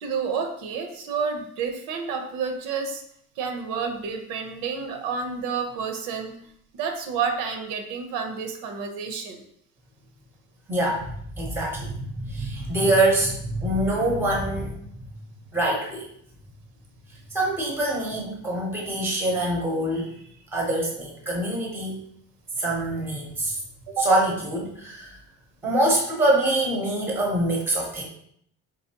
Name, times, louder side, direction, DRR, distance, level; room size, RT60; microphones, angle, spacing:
voice 1, 0.0-3.0 3.4-6.4 6.7-9.4 23.9-24.1, right 5 dB, 80° right, 5 dB, 0.8 m, -29 dB
voice 2, 10.7-14.7 15.0-15.2 15.5-16.1 17.1-22.0 22.6-23.6 24.0-25.2 25.6-28.1, right 1 dB, 5° right, -2 dB, 0.8 m, -25 dB
4.1 x 3.9 x 2.8 m, 0.67 s
cardioid pair, 170°, 33 cm